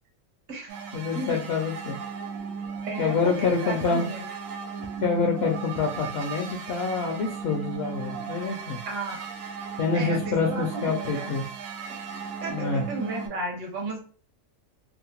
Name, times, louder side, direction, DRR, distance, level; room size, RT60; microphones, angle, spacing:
sound 1, 0.7-13.3, right 5 dB, 85° right, 1.0 m, -36 dB
voice 1, 0.9-2.0 3.0-4.1 5.0-8.8 9.8-11.4 12.5-12.9, left 5 dB, 65° left, 0 dB, 0.7 m, -26 dB
voice 2, 2.8-4.3 8.9-9.2 9.9-11.3 12.4-14.0, right 3 dB, 55° right, 1 dB, 1.0 m, -34 dB
2.7 x 2.1 x 2.8 m, 0.42 s
omnidirectional pair, 1.4 m